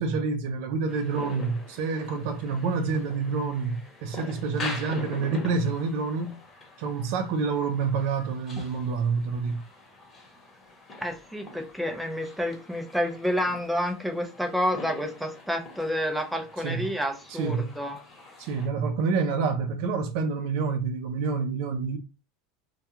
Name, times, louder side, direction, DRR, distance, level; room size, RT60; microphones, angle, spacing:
voice 1, 0.0-6.3 6.8-9.6 16.6-16.9 17.3-17.7 18.4-22.0, right 4 dB, 65° right, 0.5 m, -28 dB
sound 1, 0.9-18.7, left 2 dB, 25° left, 1.1 m, -44 dB
voice 2, 11.0-18.0, equal, ahead, 0.5 m, -29 dB
2.3 x 2.3 x 2.8 m
supercardioid pair, 130°, 0 cm